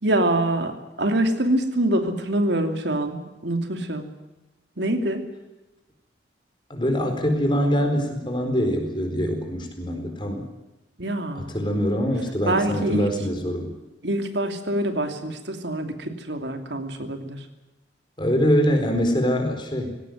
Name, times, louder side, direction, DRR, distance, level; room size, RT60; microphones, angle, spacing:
voice 1, 0.0-4.1 4.8-5.3 11.0-11.5 12.5-13.1 14.0-17.5, right 1 dB, 70° right, 6 dB, 2.7 m, -25 dB
voice 2, 6.7-10.4 11.4-13.7 18.2-19.9, equal, 25° left, 5 dB, 4.3 m, -24 dB
19.5 x 17.5 x 9.3 m, 1.0 s
head